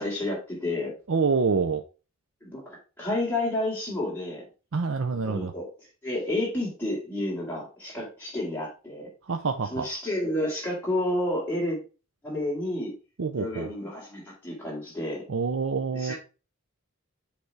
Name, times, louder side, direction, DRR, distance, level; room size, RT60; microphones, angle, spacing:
voice 1, 0.0-0.9 2.4-4.4 5.2-5.7 6.0-9.1 9.7-11.8 12.2-12.9 13.4-15.2 15.9-16.2, left 1 dB, 10° left, 3.9 m, -30 dB
voice 2, 1.1-1.8 4.7-5.5 9.3-9.8 13.2-13.7 15.3-16.1, right 5 dB, 70° right, 0.5 m, -26 dB
7.9 x 3.4 x 4.7 m
head